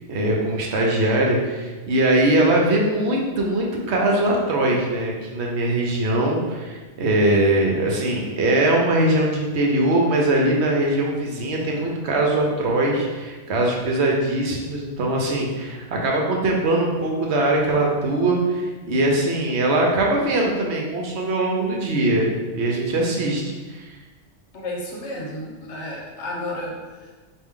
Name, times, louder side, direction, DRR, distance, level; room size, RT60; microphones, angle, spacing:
voice 1, 0.1-24.0, right 1 dB, 65° right, -1 dB, 1.0 m, -21 dB
voice 2, 24.5-27.1, left 1 dB, 70° left, -1 dB, 1.0 m, -32 dB
4.4 x 2.6 x 3.6 m, 1.3 s
omnidirectional pair, 1.2 m